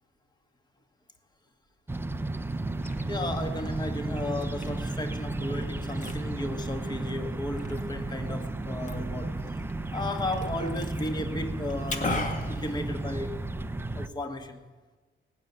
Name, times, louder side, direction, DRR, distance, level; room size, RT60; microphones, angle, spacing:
sound 1, 1.9-14.1, right 2 dB, 10° right, 0.5 m, -33 dB
Liquid, 2.5-13.5, left 2 dB, 40° left, 1.8 m, -40 dB
voice 1, 3.1-9.3 9.9-13.3 13.9-14.6, left 1 dB, 20° left, 6 dB, 1.3 m, -34 dB
18.5 x 6.8 x 9.5 m, 1.3 s
cardioid pair, 90°, 20 cm